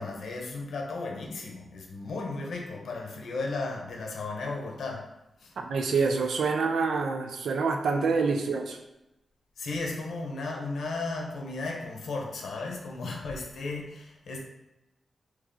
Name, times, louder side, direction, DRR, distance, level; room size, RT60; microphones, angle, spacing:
voice 1, 0.0-5.1 5.4-5.5 9.6-14.4, left 3 dB, 85° left, 0 dB, 0.8 m, -35 dB
voice 2, 5.6-8.8, right 4 dB, 85° right, 4 dB, 0.5 m, -27 dB
3.5 x 3.1 x 3.8 m, 0.92 s
wide cardioid pair, 155°, 0 cm